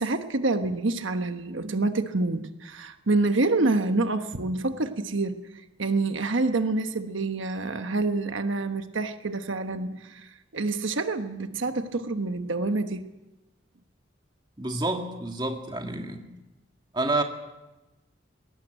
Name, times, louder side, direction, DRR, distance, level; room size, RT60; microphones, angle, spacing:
voice 1, 0.0-5.4 5.8-13.0, right 2 dB, 80° right, 8 dB, 1.2 m, -27 dB
voice 2, 14.6-16.3 16.9-17.2, right 2 dB, 20° right, 3 dB, 2.0 m, -28 dB
20.5 x 18.0 x 9.0 m, 1.0 s
head